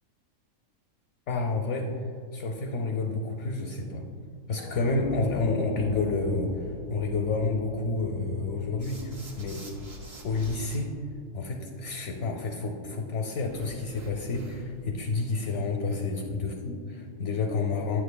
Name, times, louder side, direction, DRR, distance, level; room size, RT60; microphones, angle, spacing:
voice 1, 1.3-1.9 2.3-4.0 4.5-9.6 10.2-10.9 11.3-18.0, left 3 dB, 65° left, 2 dB, 0.8 m, -29 dB
sound 1, 4.6-10.4, left 1 dB, 5° right, 0.8 m, -41 dB
sound 2, 8.8-10.8 13.5-14.8, right 1 dB, 45° right, 1.2 m, -46 dB
9.0 x 7.1 x 2.2 m, 2.3 s
omnidirectional pair, 1.5 m